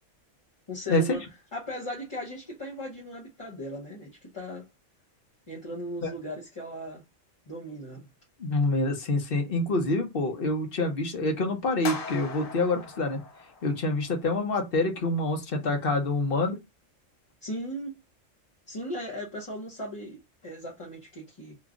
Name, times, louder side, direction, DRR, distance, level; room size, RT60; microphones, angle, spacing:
voice 1, 0.7-1.2 1.5-4.7 5.5-7.0 7.5-8.1 17.4-18.0 18.7-21.6, equal, 30° left, 0.9 m, -37 dB
voice 2, 8.4-13.2 13.6-16.6, left 2 dB, 50° left, 1.1 m, -26 dB
sound 1, 11.8-14.1, left 4 dB, 85° left, 1.3 m, -39 dB
3.0 x 2.3 x 3.7 m
omnidirectional pair, 1.3 m